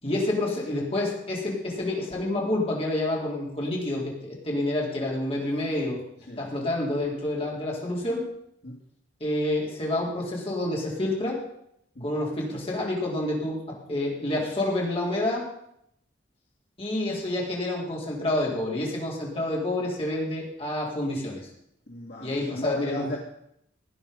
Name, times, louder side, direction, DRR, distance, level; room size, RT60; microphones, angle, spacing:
voice 1, 0.0-6.0 6.4-8.3 9.2-11.4 12.0-15.5 16.8-21.5 22.2-23.2, left 1 dB, 30° left, -3 dB, 4.3 m, -28 dB
voice 2, 21.9-23.2, left 1 dB, 60° left, -2 dB, 2.5 m, -34 dB
17.5 x 9.9 x 5.5 m, 0.75 s
head